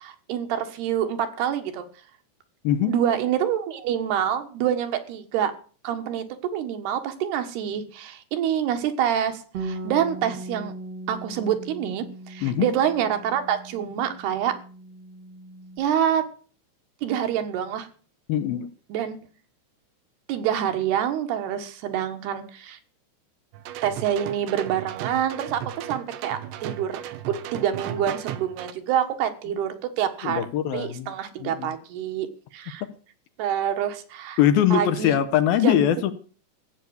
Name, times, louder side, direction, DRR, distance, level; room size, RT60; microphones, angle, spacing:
voice 1, 0.0-1.9 2.9-5.5 5.8-6.2 6.5-10.7 11.1-14.5 15.8-16.2 17.0-17.9 18.9-19.2 20.3-22.8 23.8-27.0 27.3-30.4 30.7-32.8 33.4-34.4 34.7-35.2 35.6-35.9, right 9 dB, 75° right, 3.3 m, -26 dB
Bass guitar, 9.5-15.8, right 2 dB, 50° right, 2.0 m, -39 dB
voice 2, 18.3-18.7 30.2-31.1 31.4-31.7 32.8-32.9 34.4-36.1, left 10 dB, 75° left, 2.5 m, -22 dB
sound 1, 23.5-28.7, right 11 dB, 90° right, 3.3 m, -36 dB
14.5 x 8.4 x 8.1 m
omnidirectional pair, 4.9 m